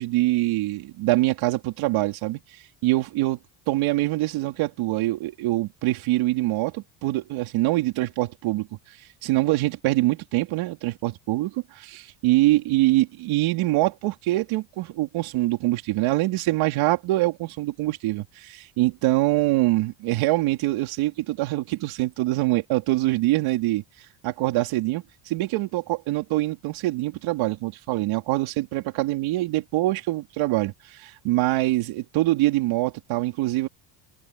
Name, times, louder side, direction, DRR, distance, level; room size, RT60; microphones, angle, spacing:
voice 1, 0.0-2.4 2.8-3.4 3.7-8.7 9.2-23.8 24.2-33.7, right 18 dB, 75° right, 3.9 m, -24 dB
cardioid pair, 145°, 49 cm